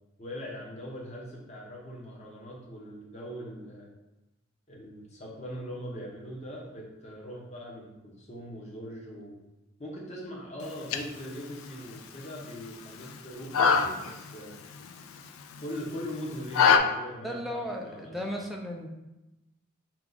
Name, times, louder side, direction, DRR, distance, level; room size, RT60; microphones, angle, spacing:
voice 1, 0.2-3.9 4.7-9.4 9.8-14.6 15.6-18.3, equal, 30° left, -3 dB, 0.9 m, -41 dB
sound 1, 10.6-16.8, left 6 dB, 80° left, 0.4 m, -28 dB
voice 2, 17.2-18.9, equal, ahead, 0 dB, 0.4 m, -35 dB
4.5 x 2.4 x 3.8 m, 1.0 s
head